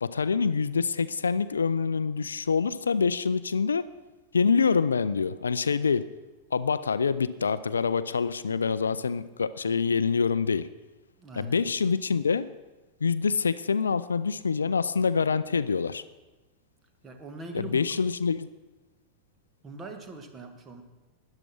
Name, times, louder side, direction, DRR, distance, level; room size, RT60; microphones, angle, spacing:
voice 1, 0.0-3.9 4.3-6.1 6.5-10.7 11.4-12.5 13.0-16.0 17.5-18.5, left 5 dB, 75° left, 15 dB, 0.4 m, -26 dB
voice 2, 11.2-11.6 17.0-17.9 19.6-20.8, right 2 dB, 20° right, 6 dB, 1.6 m, -41 dB
13.0 x 9.8 x 5.9 m, 1.2 s
figure-of-eight pair, 90°, 0 cm